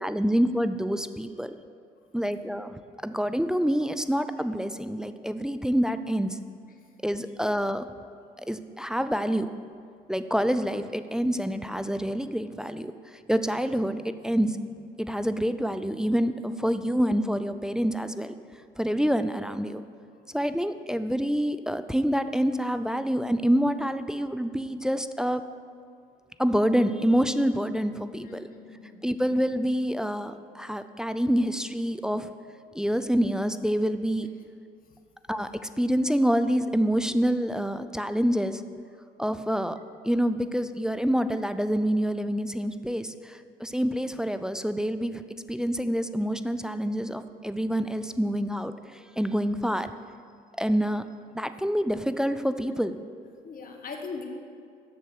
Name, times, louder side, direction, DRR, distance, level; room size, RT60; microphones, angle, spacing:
voice 1, 0.0-1.6 2.1-6.4 7.0-7.8 8.4-9.5 10.1-14.6 15.0-18.3 18.8-19.8 20.3-25.4 26.4-28.5 29.0-32.3 32.7-34.3 35.3-38.6 39.2-39.8 40.0-45.2 45.5-49.9 50.6-51.0 51.3-53.0, equal, 5° right, 11 dB, 0.5 m, -27 dB
voice 2, 7.2-7.7 20.1-20.2 28.2-29.2 34.9-35.0 53.4-54.2, left 4 dB, 50° left, 3 dB, 1.3 m, -41 dB
7.7 x 6.7 x 6.7 m, 2.3 s
supercardioid pair, 65°, 19 cm